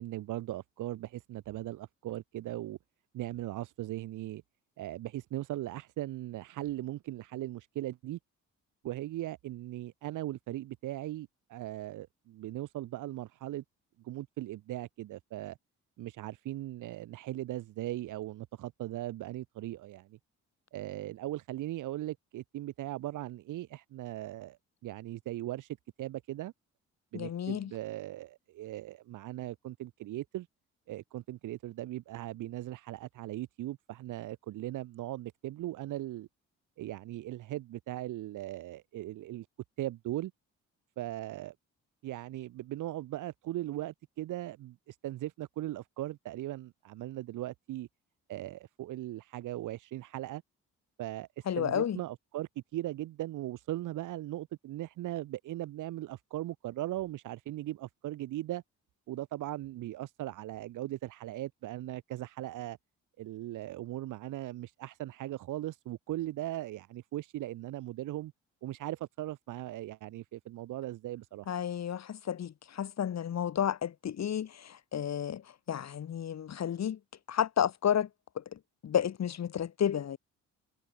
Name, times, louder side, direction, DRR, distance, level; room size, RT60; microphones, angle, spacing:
voice 1, 0.0-2.8 3.1-4.4 4.8-8.2 8.8-13.6 14.0-15.6 16.0-20.2 20.7-24.6 24.8-25.7 26.0-26.5 27.1-30.5 30.9-36.3 36.8-39.4 39.8-40.3 41.0-41.5 42.0-47.9 48.3-50.4 51.0-51.3 51.6-58.6 59.1-62.8 63.2-68.3 68.6-71.5, right 15 dB, 85° right, 6.6 m, -39 dB
voice 2, 27.1-27.7 51.5-52.0 71.5-75.4 75.7-77.0 77.3-78.1 78.4-78.5 78.8-80.2, left 9 dB, 60° left, 7.0 m, -31 dB
cardioid pair, 90°, 30 cm